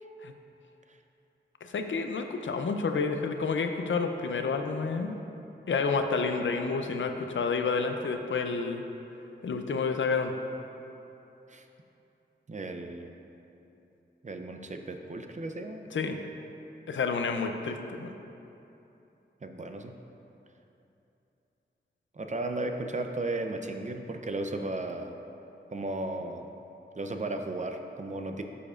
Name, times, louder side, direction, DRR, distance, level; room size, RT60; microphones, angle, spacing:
voice 1, 1.6-5.2 5.7-8.8 9.4-10.3 15.9-16.2 16.9-18.1, left 4 dB, 85° left, 5 dB, 0.5 m, -29 dB
voice 2, 12.5-13.1 14.2-15.8 19.4-19.9 22.1-25.2 25.7-26.5 26.9-28.4, right 2 dB, 40° right, 5 dB, 0.6 m, -35 dB
11.5 x 6.9 x 2.5 m, 2.9 s
wide cardioid pair, 70°, 19 cm